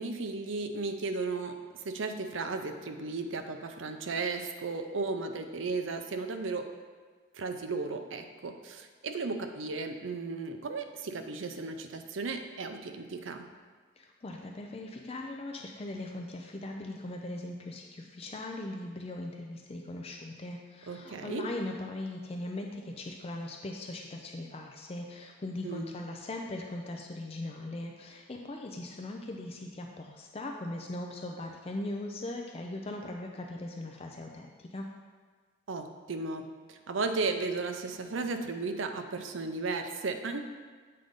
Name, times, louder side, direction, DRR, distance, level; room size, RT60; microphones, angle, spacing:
voice 1, 0.0-1.5 1.8-6.7 7.3-13.4 20.9-21.4 25.6-25.9 35.7-36.4 36.7-40.4, right 3 dB, 75° right, 6 dB, 0.6 m, -35 dB
voice 2, 14.0-34.9, left 1 dB, 30° left, 2 dB, 0.4 m, -39 dB
7.6 x 3.8 x 5.2 m, 1.5 s
head